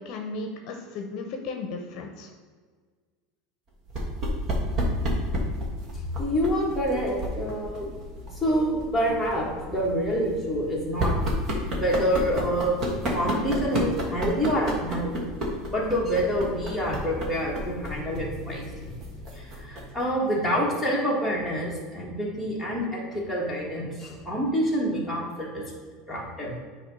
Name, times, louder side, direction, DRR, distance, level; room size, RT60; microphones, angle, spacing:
voice 1, 0.0-2.3, left 3 dB, 50° left, 3 dB, 0.8 m, -35 dB
sound 1, 3.9-20.0, equal, 35° right, 1.4 m, -32 dB
voice 2, 6.2-7.9 8.4-11.2 11.7-12.7 13.1-15.2 15.7-18.7 19.3-25.6 26.1-26.6, equal, ahead, -6 dB, 1.7 m, -27 dB
9.0 x 3.1 x 5.5 m, 1.5 s
supercardioid pair, 145°, 0 cm